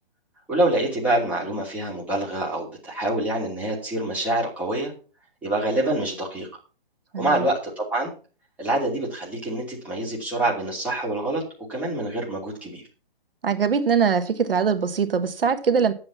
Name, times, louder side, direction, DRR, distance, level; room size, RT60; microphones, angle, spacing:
voice 1, 0.5-4.9 5.4-6.5 7.2-8.1 8.6-11.4 11.7-12.8, right 1 dB, 5° right, 2.7 m, -26 dB
voice 2, 7.1-7.4 13.4-15.9, right 6 dB, 75° right, 1.6 m, -22 dB
10.5 x 7.8 x 5.8 m
hypercardioid pair, 165°, 29 cm